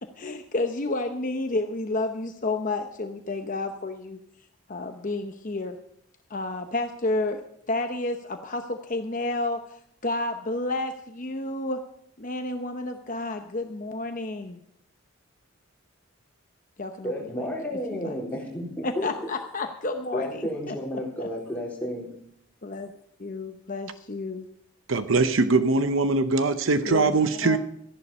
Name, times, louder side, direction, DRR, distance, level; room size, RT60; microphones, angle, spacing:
voice 1, 0.0-4.2 4.7-5.8 6.3-9.8 10.0-11.8 12.2-14.6 16.8-17.1 17.4-17.5 17.9-18.1 18.8-20.8 21.2-21.3 22.6-22.9 23.2-24.5 26.9-27.2 27.4-27.6, left 2 dB, 40° left, 0.8 m, -30 dB
voice 2, 17.0-18.6 19.0-19.1 20.1-22.1, left 1 dB, 5° left, 4.0 m, -31 dB
voice 3, 24.9-27.6, right 3 dB, 65° right, 0.8 m, -22 dB
14.5 x 11.0 x 5.5 m
head